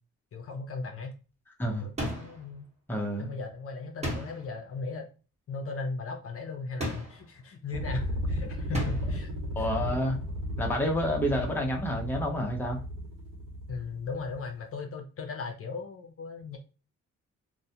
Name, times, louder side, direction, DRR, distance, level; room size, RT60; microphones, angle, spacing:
voice 1, 0.3-1.1 1.8-2.6 3.2-5.1 5.5-9.7 13.7-16.6, left 4 dB, 50° left, 3 dB, 0.6 m, -37 dB
sound 1, 2.0-2.5 4.0-4.6 6.8-7.3 8.7-9.2, equal, 20° right, 1.1 m, -35 dB
voice 2, 2.9-3.4 9.6-10.2 10.6-12.8, equal, 5° left, 0 dB, 0.7 m, -29 dB
sound 2, 7.7-14.4, left 1 dB, 85° right, 0.9 m, -34 dB
2.3 x 2.2 x 2.7 m, 0.34 s
cardioid pair, 90°, 30 cm